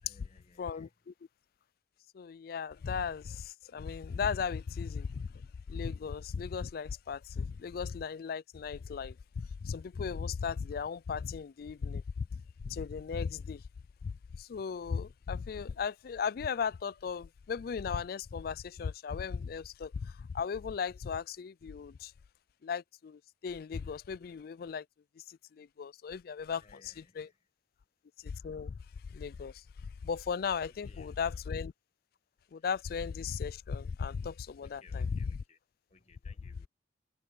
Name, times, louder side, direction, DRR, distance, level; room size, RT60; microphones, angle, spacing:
voice 1, 0.0-0.9 26.6-27.3 30.7-31.2 34.6-35.6 35.9-36.7, left 4 dB, 35° left, 1.5 m, -62 dB
voice 2, 0.6-1.1 2.1-13.6 14.0-22.1 22.6-24.9 25.2-27.3 28.2-28.8 29.1-31.7 32.5-35.4, left 6 dB, 55° left, 0.3 m, -37 dB
head